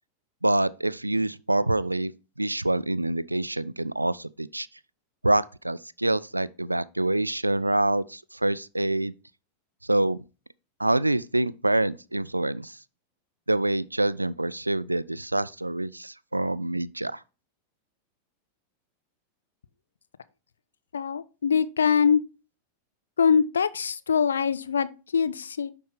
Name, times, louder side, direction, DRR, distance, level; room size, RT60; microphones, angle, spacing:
voice 1, 0.4-2.1 2.4-4.7 5.2-9.1 9.9-10.2 10.8-12.7 13.5-17.2, right 2 dB, 85° right, 0.3 m, -26 dB
voice 2, 20.9-22.2 23.2-25.7, left 6 dB, 70° left, 0.5 m, -23 dB
10.5 x 4.3 x 3.4 m
figure-of-eight pair, 90°, 0 cm